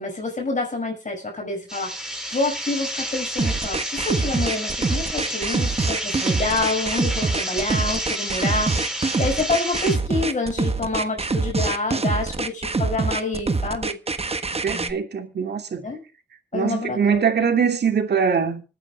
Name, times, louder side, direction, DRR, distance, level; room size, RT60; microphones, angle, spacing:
voice 1, 0.0-14.0 14.7-15.0 15.8-16.0 16.5-17.3, left 2 dB, 45° left, 5.7 m, -27 dB
sound 1, 1.7-10.0, equal, 5° right, 5.1 m, -30 dB
sound 2, 3.4-14.9, right 3 dB, 35° right, 1.4 m, -24 dB
voice 2, 14.6-15.9 16.5-18.6, right 6 dB, 70° right, 2.7 m, -22 dB
26.0 x 9.9 x 2.4 m
cardioid pair, 60°, 18 cm